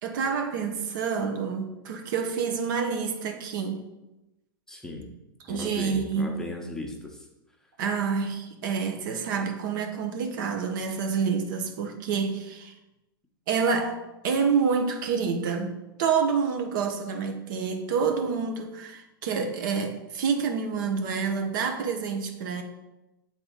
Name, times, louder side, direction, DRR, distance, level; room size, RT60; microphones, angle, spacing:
voice 1, 0.0-3.8 5.5-6.3 7.8-12.7 13.5-22.6, right 6 dB, 60° right, 4 dB, 0.9 m, -28 dB
voice 2, 4.7-5.1 5.5-7.3, left 2 dB, 5° left, 0 dB, 1.0 m, -37 dB
6.8 x 3.8 x 3.8 m, 0.99 s
hypercardioid pair, 110°, 12 cm